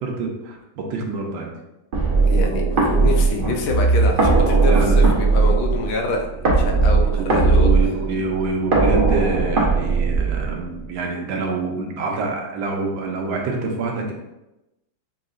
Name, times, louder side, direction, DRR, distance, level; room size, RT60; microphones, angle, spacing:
voice 1, 0.0-1.5 4.6-5.0 7.1-14.1, right 3 dB, 75° right, 1 dB, 1.3 m, -26 dB
sound 1, 1.9-10.9, right 4 dB, 50° right, 0.6 m, -18 dB
voice 2, 2.2-7.7, left 3 dB, 90° left, 2 dB, 1.6 m, -26 dB
6.2 x 2.9 x 2.5 m, 0.95 s
omnidirectional pair, 2.3 m